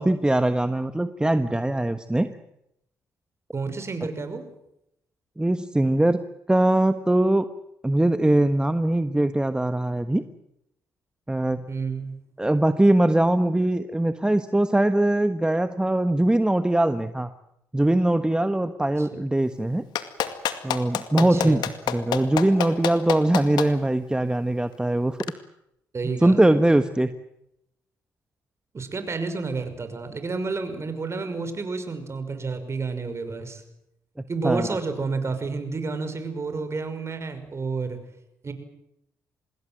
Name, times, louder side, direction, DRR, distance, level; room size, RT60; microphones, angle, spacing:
voice 1, 0.0-2.3 5.4-6.2 6.5-7.5 7.8-10.2 11.3-11.6 12.4-17.3 17.7-19.8 20.6-21.6 21.9-25.2 26.2-27.1 34.4-34.8, right 1 dB, 10° right, 10 dB, 1.3 m, -21 dB
voice 2, 3.5-4.5 11.7-12.1 19.0-19.1 21.3-21.7 25.9-26.4 28.7-33.6 34.3-38.0 38.4-38.5, right 4 dB, 40° right, 9 dB, 5.8 m, -30 dB
Clapping, 19.9-23.7 25.2-25.3, left 11 dB, 75° left, 2.2 m, -26 dB
26.0 x 21.0 x 7.8 m, 0.81 s
supercardioid pair, 60°, 7 cm